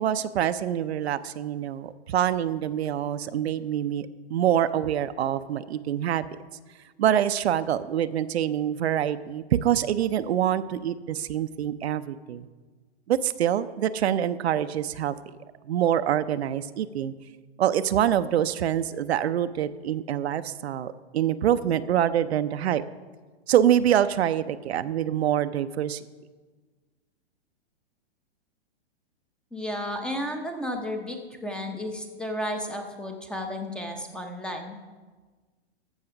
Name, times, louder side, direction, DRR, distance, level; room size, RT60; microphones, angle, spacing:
voice 1, 0.0-6.2 7.0-12.5 13.1-15.1 15.7-17.1 17.6-22.8 23.5-26.0, right 10 dB, 75° right, 12 dB, 0.6 m, -25 dB
voice 2, 29.5-34.8, left 1 dB, 5° left, 4 dB, 0.6 m, -33 dB
14.5 x 4.9 x 5.8 m, 1.4 s
hypercardioid pair, 135°, 32 cm